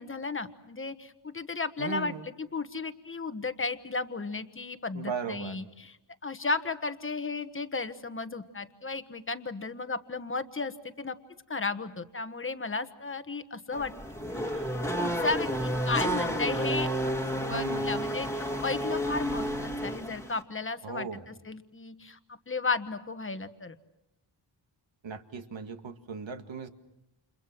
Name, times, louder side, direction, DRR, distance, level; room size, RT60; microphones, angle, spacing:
voice 1, 0.0-6.0 6.2-11.2 11.5-13.9 14.3-14.7 15.0-16.9 17.3-22.2 22.5-23.7, left 3 dB, 25° left, 10 dB, 1.3 m, -34 dB
voice 2, 1.8-2.3 4.9-5.6 17.5-18.0 20.8-21.2 25.0-26.7, right 6 dB, 65° right, 6 dB, 2.0 m, -37 dB
Race car auto racing / Accelerating revving vroom, 13.7-20.4, equal, 5° left, 1.9 m, -31 dB
30.0 x 29.0 x 6.0 m, 0.86 s
wide cardioid pair, 170°, 49 cm